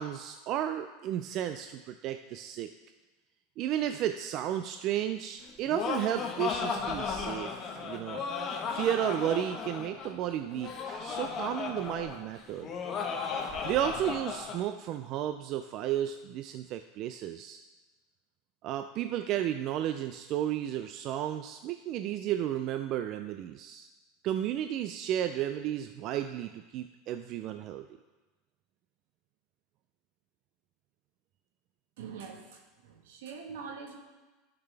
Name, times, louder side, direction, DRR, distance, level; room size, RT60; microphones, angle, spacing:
voice 1, 0.0-2.7 3.6-8.2 8.7-12.7 13.6-17.6 18.6-23.9 24.2-27.9, right 11 dB, 45° right, 8 dB, 0.3 m, -33 dB
Laughter, 5.4-14.6, left 5 dB, 35° left, 1.2 m, -35 dB
voice 2, 32.0-34.0, right 6 dB, 80° right, 3 dB, 1.4 m, -44 dB
12.0 x 5.9 x 3.4 m, 1.2 s
supercardioid pair, 130°, 0 cm